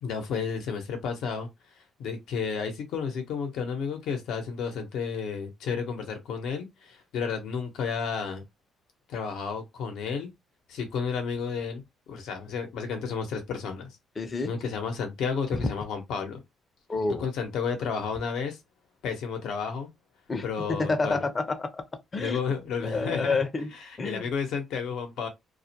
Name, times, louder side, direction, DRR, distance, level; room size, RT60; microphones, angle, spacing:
voice 1, 0.0-1.5 2.0-8.4 9.1-10.3 10.7-14.0 14.4-16.4 17.2-18.6 19.0-19.9 20.4-21.2 22.2-23.4 24.0-25.3, left 6 dB, 80° left, 0.8 m, -32 dB
voice 2, 14.2-14.5 15.5-15.7 16.9-17.3 20.3-21.8 22.1-22.4 22.8-23.7 24.0-24.3, left 3 dB, 30° left, 0.5 m, -29 dB
2.4 x 2.1 x 2.8 m
cardioid pair, 90°, 0 cm